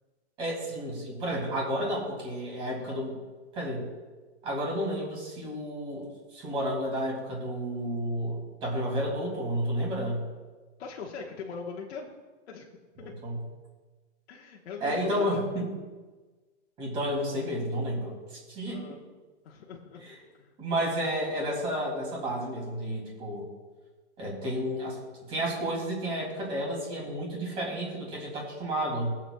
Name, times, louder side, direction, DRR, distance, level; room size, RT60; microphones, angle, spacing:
voice 1, 0.4-3.2 3.5-3.9 4.4-10.2 13.0-13.4 14.8-15.7 16.8-19.0 20.0-20.1 20.6-23.4 24.2-25.0 25.3-29.1, equal, 15° right, -3 dB, 2.4 m, -31 dB
voice 2, 10.8-12.1 12.5-12.7 13.0-13.1 14.3-15.4 18.7-19.0 19.4-20.0 20.4-20.5, left 5 dB, 65° left, -3 dB, 1.2 m, -40 dB
20.0 x 7.4 x 2.2 m, 1.3 s
hypercardioid pair, 175°, 35 cm